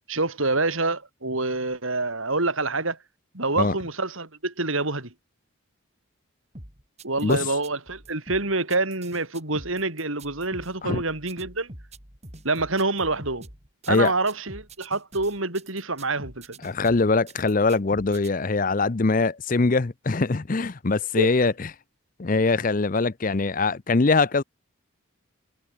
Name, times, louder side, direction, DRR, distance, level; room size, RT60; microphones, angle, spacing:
voice 1, 0.1-3.0 3.3-5.1 7.0-11.7 12.4-13.5 13.9-16.6 21.2-21.5, right 3 dB, 75° right, 4.5 m, -27 dB
sound 1, 6.5-18.3, right 1 dB, 30° right, 5.6 m, -44 dB
voice 2, 16.6-21.7 22.2-24.4, left 3 dB, 40° left, 0.6 m, -22 dB
head